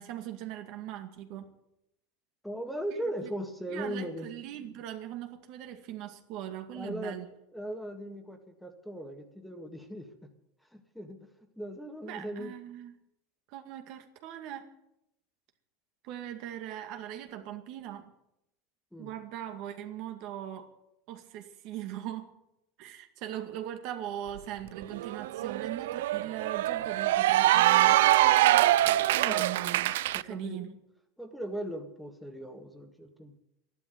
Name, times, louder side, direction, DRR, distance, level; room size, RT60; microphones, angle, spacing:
voice 1, 0.0-1.5 3.2-3.3 3.7-7.3 12.0-12.9 13.5-14.7 16.0-18.1 19.0-20.7 21.1-22.3 22.8-28.0 29.1-30.0 30.2-30.7, right 11 dB, 60° right, 6 dB, 2.1 m, -40 dB
voice 2, 2.4-4.3 6.7-7.2 7.5-10.3 10.7-11.3 11.6-12.5 18.9-19.1 29.3-29.5 30.1-30.8 31.2-33.4, equal, ahead, 6 dB, 1.8 m, -38 dB
Cheering / Applause, 24.4-24.5 24.8-30.2, right 15 dB, 85° right, 0.5 m, -24 dB
12.5 x 11.5 x 9.3 m, 0.82 s
supercardioid pair, 130°, 0 cm